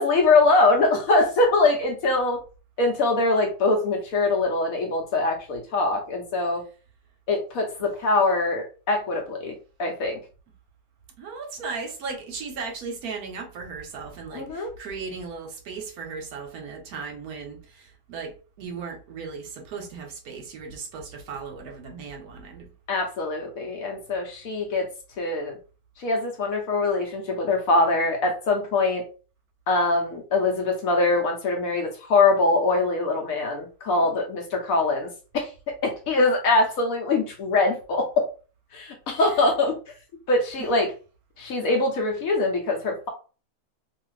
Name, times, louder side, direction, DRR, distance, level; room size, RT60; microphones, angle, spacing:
voice 1, 0.0-2.4 2.8-6.6 7.3-10.2 14.3-14.7 22.9-24.9 25.2-25.5 26.0-29.0 29.7-35.1 35.3-38.3 38.7-39.8 40.3-40.9 41.4-43.1, left 3 dB, 65° left, 2 dB, 0.9 m, -23 dB
voice 2, 11.2-22.7 39.3-39.4 40.6-40.7, right 5 dB, 70° right, 3 dB, 1.0 m, -36 dB
2.6 x 2.4 x 3.0 m, 0.35 s
omnidirectional pair, 1.8 m